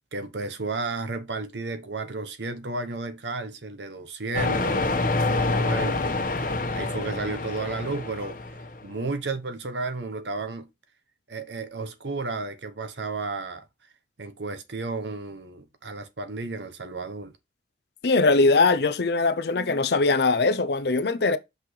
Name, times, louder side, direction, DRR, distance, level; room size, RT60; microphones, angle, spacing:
voice 1, 0.0-4.9 5.3-6.2 6.7-8.4 8.8-10.7 11.3-13.7 14.2-17.3, right 3 dB, 85° right, 1.0 m, -33 dB
sound 1, 4.3-8.9, left 2 dB, 50° left, 1.2 m, -27 dB
voice 2, 18.0-21.4, left 3 dB, 65° left, 0.6 m, -21 dB
5.9 x 5.4 x 3.2 m
head